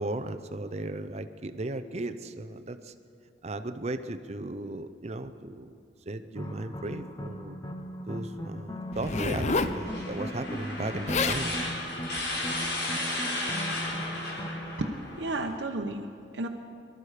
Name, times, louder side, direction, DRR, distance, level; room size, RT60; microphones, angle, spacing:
voice 1, 0.0-2.9 3.4-5.8 6.1-7.6 8.1-11.6, right 2 dB, 40° right, 10 dB, 0.6 m, -36 dB
sound 1, 6.4-14.9, equal, 20° left, 0.9 m, -38 dB
Zipper (clothing), 8.9-9.8 10.8-10.9 11.1-11.4 12.2-12.4, left 4 dB, 40° left, 0.6 m, -29 dB
sound 2, 9.0-15.5, left 1 dB, 80° left, 4.0 m, -35 dB
voice 2, 14.8-16.5, right 2 dB, 85° right, 2 dB, 0.9 m, -33 dB
23.0 x 13.0 x 5.0 m, 2.5 s
head